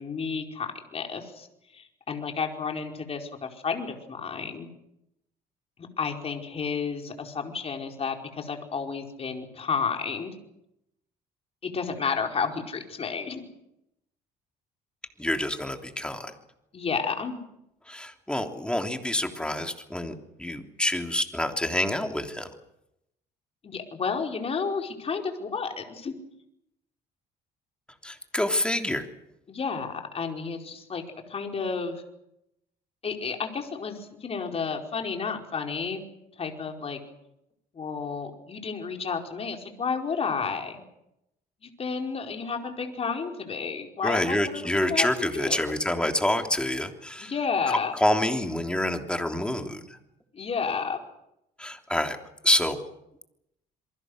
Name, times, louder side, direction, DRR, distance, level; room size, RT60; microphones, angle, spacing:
voice 1, 0.0-1.5 1.7-4.7 6.0-10.3 11.6-13.5 16.7-17.4 23.6-26.1 29.5-31.0 31.3-32.0 33.0-36.0 36.4-37.0 37.7-40.8 41.6-45.7 47.2-47.9 50.3-51.0, left 5 dB, 35° left, 3 dB, 4.8 m, -31 dB
voice 2, 15.2-16.3 17.9-20.1 20.4-22.5 28.0-29.0 44.0-47.3 47.9-49.8 51.6-52.2 52.4-52.8, left 1 dB, 5° left, 4 dB, 3.3 m, -27 dB
27.5 x 23.5 x 6.5 m, 0.83 s
cardioid pair, 110°, 17 cm